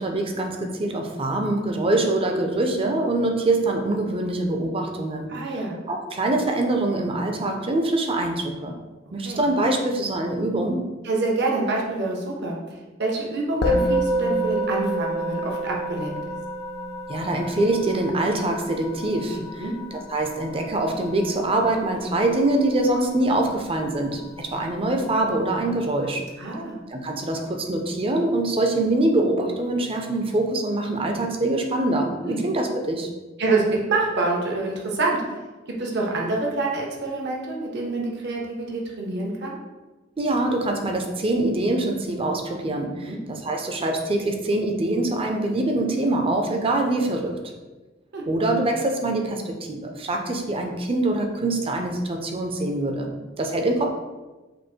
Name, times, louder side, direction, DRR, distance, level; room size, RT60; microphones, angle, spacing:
voice 1, 0.0-5.3 5.9-8.8 9.1-10.8 17.1-19.4 19.9-26.2 26.9-33.1 40.2-47.3 48.3-53.1 53.4-53.9, right 2 dB, 30° right, 3 dB, 0.5 m, -24 dB
voice 2, 5.3-5.8 9.2-9.5 11.0-16.2 19.6-19.7 26.4-26.8 32.2-32.4 33.4-35.2 35.7-39.6 42.8-43.2 48.1-48.2, right 3 dB, 60° right, -1 dB, 0.8 m, -26 dB
Musical instrument, 13.6-23.1, right 1 dB, 55° left, 0.5 m, -29 dB
5.1 x 2.1 x 4.4 m, 1.2 s
head